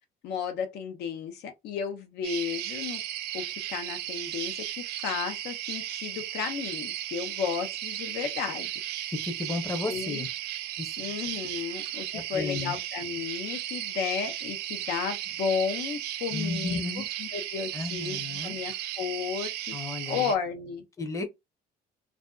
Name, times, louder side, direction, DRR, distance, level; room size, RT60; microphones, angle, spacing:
voice 1, 0.2-3.0 3.3-8.7 9.9-10.2 11.0-19.8 20.1-20.8, left 6 dB, 85° left, 0.7 m, -33 dB
sound 1, 2.2-20.4, right 12 dB, 75° right, 0.4 m, -35 dB
voice 2, 9.1-10.3 10.8-10.9 12.1-12.8 16.3-17.1 17.7-18.6 19.7-20.3 21.0-21.2, left 3 dB, 20° left, 0.7 m, -33 dB
2.5 x 2.4 x 2.2 m
cardioid pair, 110°, 17 cm